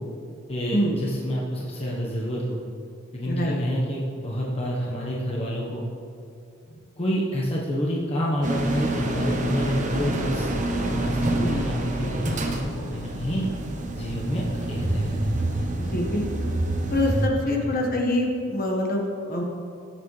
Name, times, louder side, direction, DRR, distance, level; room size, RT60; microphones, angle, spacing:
voice 1, 0.5-2.6 3.1-5.8 6.7-10.5 10.9-13.5 13.9-15.7 17.5-17.7, equal, 30° left, -5 dB, 1.2 m, -28 dB
voice 2, 3.2-3.6 11.4-11.6 15.8-16.4 16.9-19.4, left 1 dB, 50° left, 0 dB, 1.4 m, -25 dB
sound 1, 8.4-17.3, right 1 dB, 40° right, 0.9 m, -27 dB
16.5 x 7.2 x 3.3 m, 2.5 s
head